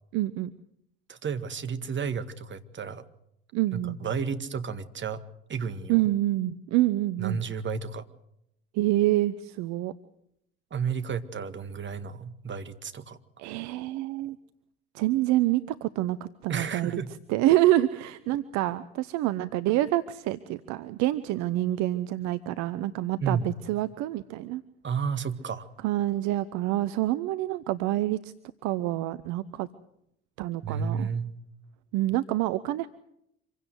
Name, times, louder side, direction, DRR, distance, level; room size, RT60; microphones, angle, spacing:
voice 1, 0.1-0.5 3.5-4.0 5.9-7.4 8.7-9.9 13.4-14.4 14.9-17.0 17.3-24.6 25.8-28.3 28.6-29.7 30.4-31.1 31.9-32.9, right 15 dB, 60° right, 14 dB, 0.8 m, -27 dB
voice 2, 1.1-3.0 3.7-5.2 5.5-6.0 7.2-8.0 10.7-13.2 16.5-17.1 23.2-23.5 24.8-25.7 30.6-31.3, right 6 dB, 35° right, 10 dB, 1.9 m, -32 dB
26.0 x 16.5 x 8.0 m, 0.77 s
figure-of-eight pair, 55°, 33 cm